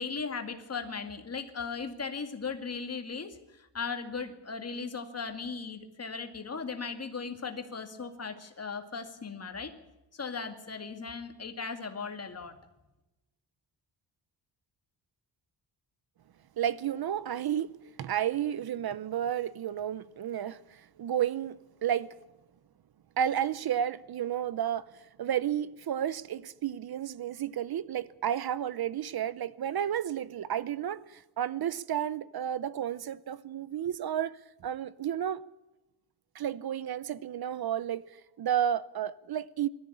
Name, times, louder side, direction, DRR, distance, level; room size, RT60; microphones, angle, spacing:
voice 1, 0.0-9.7 10.1-12.6, left 5 dB, 35° left, 2.2 m, -37 dB
voice 2, 16.6-22.1 23.2-35.4 36.3-38.0 38.4-39.7, right 10 dB, 60° right, 0.8 m, -32 dB
22.0 x 14.0 x 8.7 m
wide cardioid pair, 160°, 43 cm